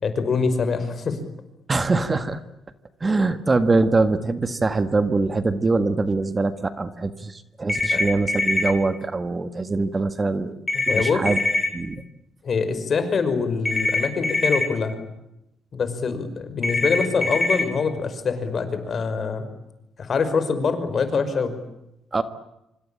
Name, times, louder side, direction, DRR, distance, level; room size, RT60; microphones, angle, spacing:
voice 1, 0.0-1.2 7.9-8.1 10.9-11.2 12.4-15.0 15.7-19.5 20.0-21.6, left 5 dB, 50° left, 10 dB, 5.5 m, -24 dB
voice 2, 1.7-2.4 3.0-10.6 10.9-11.4 11.7-12.0 22.1-22.2, right 3 dB, 25° right, 10 dB, 1.7 m, -23 dB
sound 1, 7.7-8.7 10.7-11.7 13.7-14.6 16.6-17.6, left 2 dB, 20° left, 7.9 m, -23 dB
26.0 x 26.0 x 8.8 m, 0.87 s
cardioid pair, 90°, 0 cm